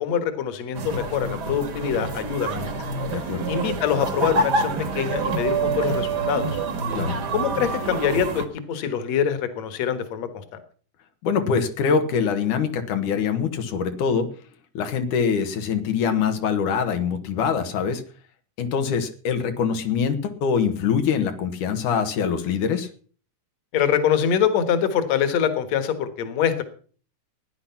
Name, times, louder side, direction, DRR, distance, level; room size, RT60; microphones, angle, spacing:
voice 1, 0.0-2.9 3.5-6.6 7.3-10.4 23.7-26.6, left 8 dB, 60° left, 10 dB, 2.6 m, -24 dB
sound 1, 0.7-8.5, right 3 dB, 45° right, 1.6 m, -27 dB
voice 2, 3.1-3.4 6.9-7.2 11.2-14.3 14.7-18.0 18.6-22.9, left 6 dB, 85° left, 7 dB, 2.9 m, -24 dB
16.5 x 10.5 x 5.8 m, 0.42 s
omnidirectional pair, 3.5 m